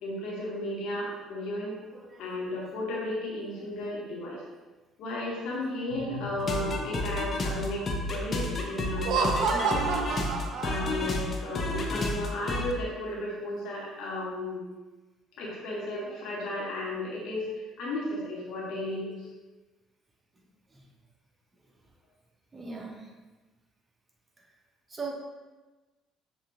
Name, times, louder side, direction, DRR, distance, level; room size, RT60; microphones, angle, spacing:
voice 1, 0.0-1.7 2.2-4.4 5.0-10.0 10.6-14.6 15.4-17.4 17.8-19.2, left 1 dB, 60° left, -4 dB, 1.1 m, -34 dB
voice 2, 1.9-2.7 3.5-3.8 20.7-20.9 22.5-23.1 24.9-25.1, right 4 dB, 25° right, 0 dB, 0.8 m, -41 dB
sound 1, 5.9-10.3, left 4 dB, 80° left, 0.4 m, -43 dB
sound 2, 6.4-12.7, left 2 dB, 40° left, 0.6 m, -31 dB
Laughter, 8.9-11.2, right 5 dB, 60° right, 0.3 m, -29 dB
6.5 x 2.5 x 2.6 m, 1.2 s
hypercardioid pair, 50°, 0 cm